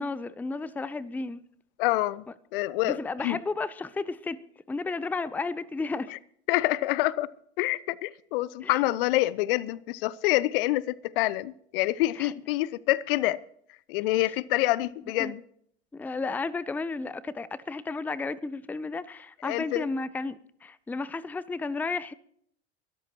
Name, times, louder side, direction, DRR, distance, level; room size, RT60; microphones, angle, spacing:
voice 1, 0.0-1.4 2.8-4.4 4.7-6.1 8.6-8.8 12.2-12.3 15.2-15.3 15.9-22.1, left 3 dB, 5° left, 0.5 m, -33 dB
voice 2, 1.8-2.2 2.5-3.4 6.1-6.2 6.5-7.3 7.6-13.4 13.9-15.4 19.4-19.9, left 17 dB, 55° left, 0.6 m, -27 dB
23.0 x 13.0 x 2.9 m
figure-of-eight pair, 75°, 34 cm